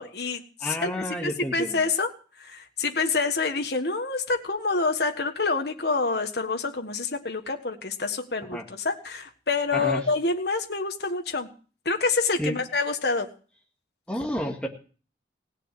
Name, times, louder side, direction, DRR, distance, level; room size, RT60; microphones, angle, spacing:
voice 1, 0.0-0.9 1.2-2.1 2.4-11.5 11.8-13.3, left 4 dB, 60° left, 5 dB, 1.6 m, -27 dB
voice 2, 0.6-1.8 8.5-8.6 9.7-10.0 12.4-12.6 14.1-14.7, equal, 5° left, 1 dB, 2.0 m, -30 dB
17.5 x 6.6 x 9.1 m, 0.40 s
head